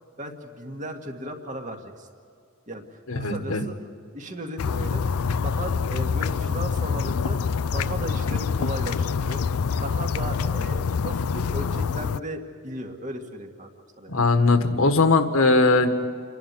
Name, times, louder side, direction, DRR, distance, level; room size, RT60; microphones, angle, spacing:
voice 1, 0.2-2.1 2.7-3.8 4.1-5.2 5.4-7.4 7.7-13.7 14.0-14.2, right 1 dB, 35° right, 3 dB, 2.0 m, -36 dB
voice 2, 3.1-3.6 14.1-16.0, left 3 dB, 75° left, 7 dB, 1.6 m, -20 dB
sound 1, 4.6-12.2, left 5 dB, 90° left, 0.5 m, -26 dB
28.0 x 11.5 x 9.7 m, 2.4 s
head